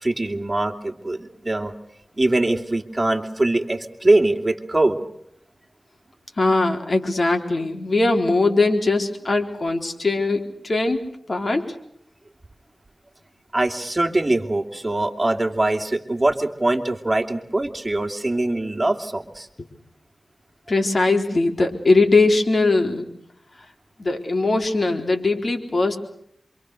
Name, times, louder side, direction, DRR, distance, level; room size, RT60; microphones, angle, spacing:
voice 1, 0.0-1.7 2.2-5.0 13.5-19.5, right 2 dB, 30° right, 5 dB, 2.9 m, -22 dB
voice 2, 6.4-11.0 11.3-11.7 20.7-23.1 24.0-26.0, left 3 dB, 60° left, 4 dB, 4.0 m, -20 dB
27.5 x 25.0 x 6.5 m, 0.73 s
cardioid pair, 45°, 0 cm